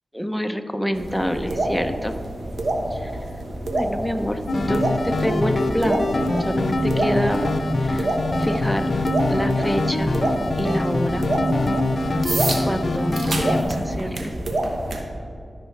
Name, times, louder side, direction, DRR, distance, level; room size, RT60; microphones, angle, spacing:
voice 1, 0.1-2.1 2.9-3.1 3.6-6.1 6.4-7.4 7.8-8.1 8.4-9.0 9.3-10.1 10.6-11.3 12.7-14.3, equal, ahead, 7 dB, 0.6 m, -26 dB
sound 1, 0.9-15.0, right 1 dB, 70° right, 1.1 m, -27 dB
sound 2, 4.5-13.6, left 2 dB, 60° left, 0.6 m, -24 dB
13.5 x 5.7 x 3.2 m, 2.4 s
cardioid pair, 55°, 0 cm